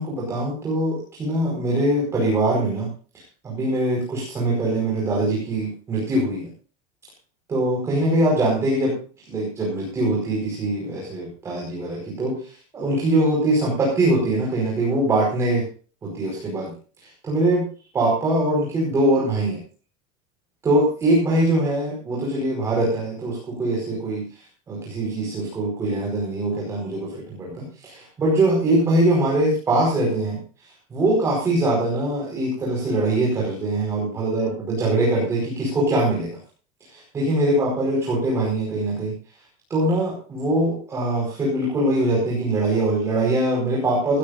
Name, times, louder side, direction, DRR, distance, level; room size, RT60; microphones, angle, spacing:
voice 1, 0.0-2.9 3.4-6.5 7.5-9.0 9.3-15.6 16.0-16.7 17.2-17.7 17.9-19.6 20.6-24.2 24.7-30.4 30.9-36.4 36.9-39.1 39.7-44.2, right 1 dB, 15° right, -3 dB, 4.9 m, -22 dB
17.5 x 16.5 x 2.6 m, 0.38 s
supercardioid pair, 175°, 18 cm